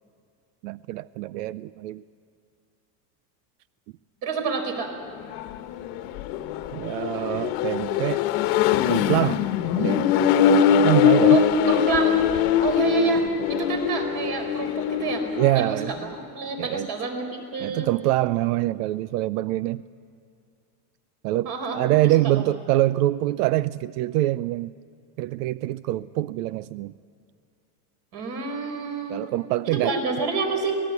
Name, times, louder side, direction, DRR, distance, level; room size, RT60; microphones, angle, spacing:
voice 1, 0.6-2.0 6.7-8.3 8.9-9.4 9.8-10.1 10.7-11.4 15.4-15.9 16.6-16.9 17.6-19.8 21.2-24.7 25.2-26.9 29.1-30.0, right 16 dB, 85° right, 17 dB, 0.6 m, -24 dB
voice 2, 4.2-4.9 11.3-12.2 12.6-15.2 15.5-17.9 21.4-21.8 22.4-22.5 28.1-29.2 29.6-30.8, right 4 dB, 45° right, 4 dB, 4.5 m, -28 dB
Accelerating revving vroom, 5.2-15.7, left 8 dB, 55° left, 1.2 m, -22 dB
25.5 x 19.0 x 8.3 m, 2.3 s
cardioid pair, 165°, 46 cm